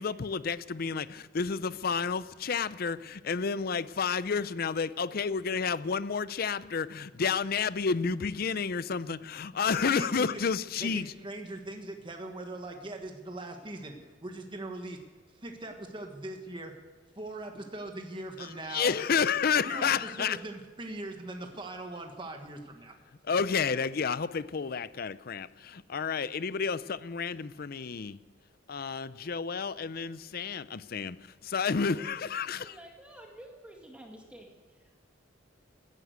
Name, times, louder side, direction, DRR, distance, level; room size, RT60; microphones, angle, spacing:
voice 1, 0.0-11.1 18.4-20.4 23.3-28.2 28.7-32.7, left 5 dB, 50° left, 16 dB, 0.5 m, -30 dB
voice 2, 9.8-10.4 10.8-14.0 14.2-15.0 15.3-16.7 17.2-18.9 19.7-22.9, right 2 dB, 25° right, 4 dB, 1.4 m, -41 dB
voice 3, 32.5-35.1, right 1 dB, 5° right, 0 dB, 2.0 m, -51 dB
15.5 x 11.0 x 8.1 m, 1.3 s
head